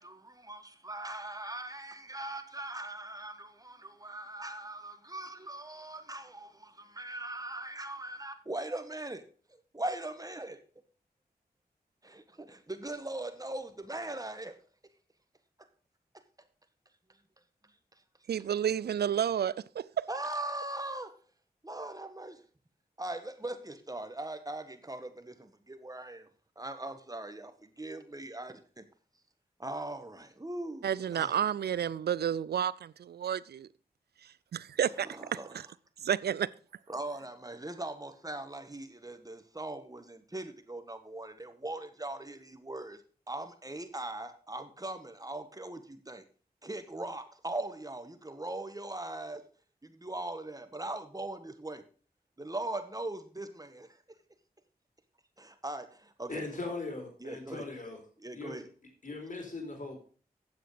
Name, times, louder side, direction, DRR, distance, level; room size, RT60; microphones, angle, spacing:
voice 1, 0.0-9.2 9.7-10.6 12.0-14.5 20.1-21.1 21.6-22.4 23.0-26.3 26.5-28.8 29.6-31.4 35.0-35.6 36.9-43.0 43.3-46.2 46.6-49.4 49.8-51.8 52.4-54.0 55.4-56.4 57.2-57.6 58.2-58.7, right 2 dB, 20° right, 1.6 m, -40 dB
voice 2, 18.3-20.1 30.8-33.7 34.5-35.1 35.5-35.7 36.0-36.5, right 9 dB, 75° right, 0.4 m, -31 dB
voice 3, 56.3-58.0 58.3-58.6 59.0-60.0, left 3 dB, 50° left, 4.3 m, -39 dB
9.3 x 7.5 x 5.0 m
cardioid pair, 40°, 17 cm